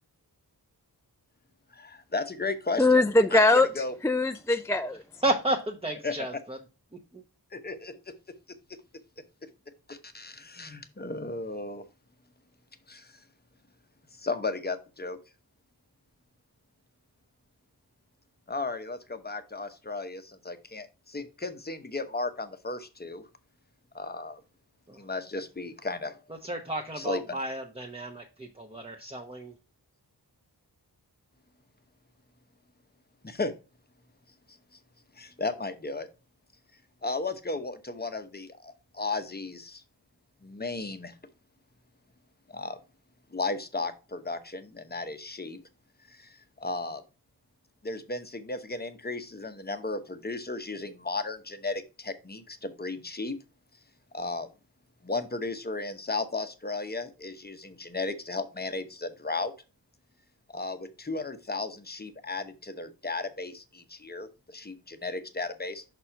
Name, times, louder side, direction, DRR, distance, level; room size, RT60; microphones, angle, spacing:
voice 1, 1.8-3.0 3.3-3.9 6.0-6.4 7.5-8.0 9.9-11.8 12.9-13.0 14.2-15.2 18.5-23.2 23.9-24.4 25.0-26.2 27.0-27.4 33.2-33.5 35.2-36.1 37.0-39.8 40.4-41.1 42.5-42.8 43.3-45.6 46.6-47.0 47.8-53.4 54.1-54.5 55.0-59.5 60.5-65.8, left 3 dB, 25° left, 0.8 m, -34 dB
voice 2, 2.8-5.0, left 2 dB, 10° left, 0.3 m, -22 dB
voice 3, 5.2-6.6 7.1-7.2 24.9-25.0 26.4-29.5, right 1 dB, 15° right, 0.9 m, -32 dB
6.1 x 4.3 x 4.4 m
wide cardioid pair, 85°, 40 cm